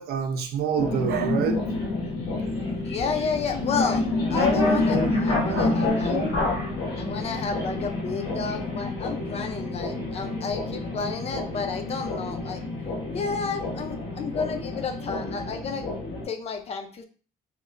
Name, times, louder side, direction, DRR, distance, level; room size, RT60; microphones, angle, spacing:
voice 1, 0.0-1.6 5.5-5.8 6.1-6.3, right 7 dB, 70° right, 0.5 m, -27 dB
sound 1, 0.8-16.2, left 2 dB, 90° left, 1.1 m, -28 dB
voice 2, 2.8-6.3 7.0-12.6 13.1-15.9 16.3-17.0, left 5 dB, 40° left, 0.4 m, -31 dB
3.0 x 2.0 x 2.4 m
cardioid pair, 110°, 17 cm